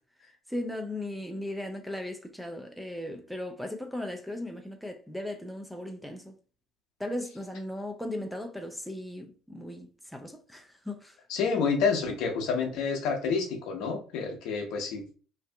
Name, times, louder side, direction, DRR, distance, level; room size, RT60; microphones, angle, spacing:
voice 1, 0.5-6.3 7.0-11.2, left 1 dB, ahead, 0.4 m, -37 dB
voice 2, 11.3-15.1, left 5 dB, 65° left, 0.7 m, -29 dB
2.6 x 2.4 x 2.2 m
hypercardioid pair, 65°, 0 cm